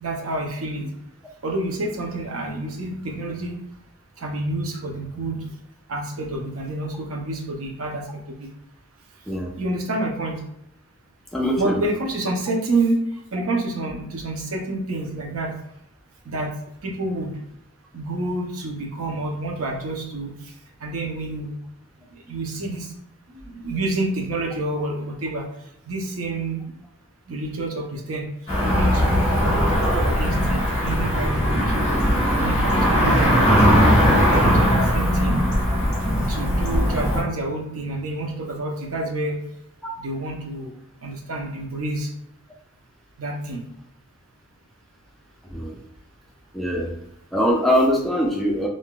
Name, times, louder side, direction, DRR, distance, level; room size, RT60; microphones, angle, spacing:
voice 1, 0.0-0.8 1.4-3.6 4.2-5.5 5.9-8.5 9.6-10.4 11.6-13.0 13.3-15.6 16.3-16.5 16.8-17.3 17.9-20.3 20.8-21.5 22.3-22.9 23.3-25.5 25.9-26.6 27.3-28.3 28.6-32.0 32.4-33.6 33.9-35.4 36.3-39.4 40.0-40.7 41.0-42.1 43.2-43.6, right 2 dB, 65° right, 0 dB, 0.6 m, -28 dB
voice 2, 11.3-11.8 39.8-39.9 45.4-45.8 46.5-46.9 47.3-48.7, equal, ahead, -2 dB, 0.4 m, -22 dB
Cricket / Motor vehicle (road), 28.5-37.2, equal, 30° left, 1.2 m, -19 dB
3.6 x 2.5 x 2.3 m, 0.77 s
head